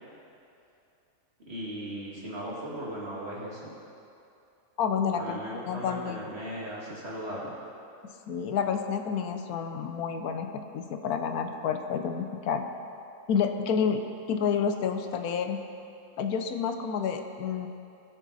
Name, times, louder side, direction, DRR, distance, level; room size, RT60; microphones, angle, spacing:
voice 1, 1.5-3.7 5.2-7.5, equal, 45° right, -5 dB, 2.3 m, -37 dB
voice 2, 4.8-5.4 5.7-6.3 8.3-12.7 13.3-14.0 14.3-15.6 16.2-17.7, left 6 dB, 80° left, 6 dB, 1.2 m, -29 dB
20.5 x 7.4 x 4.1 m, 2.6 s
omnidirectional pair, 1.6 m